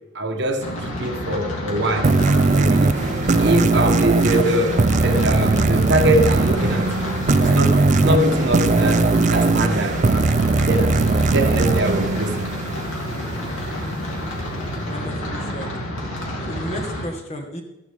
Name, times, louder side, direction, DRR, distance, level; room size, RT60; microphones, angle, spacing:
voice 1, 0.1-2.2 2.5-3.0 3.4-6.9 7.4-10.3 10.7-10.9 11.3-12.5, right 1 dB, 55° right, 1.1 m, -23 dB
sound 1, 0.6-17.1, equal, 65° left, 3.0 m, -29 dB
sound 2, 2.0-13.2, right 3 dB, 35° right, 0.4 m, -19 dB
voice 2, 14.9-15.7 16.5-17.6, equal, 30° left, 1.5 m, -33 dB
14.0 x 11.0 x 3.5 m
head